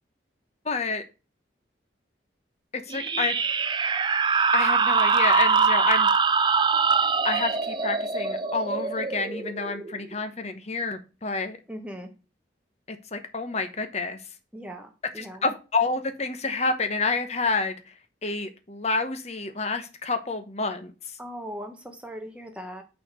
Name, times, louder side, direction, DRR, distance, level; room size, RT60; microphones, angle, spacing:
voice 1, 0.6-1.0 2.7-3.3 4.5-6.1 7.2-11.6 12.9-14.2 15.2-17.8 18.2-20.9, left 3 dB, 35° left, 8 dB, 1.0 m, -28 dB
sound 1, 2.9-10.1, right 5 dB, 25° right, 0.4 m, -23 dB
voice 2, 11.7-12.1 14.5-15.4 21.2-22.8, equal, 5° right, 4 dB, 1.1 m, -39 dB
6.5 x 4.3 x 6.4 m, 0.32 s
head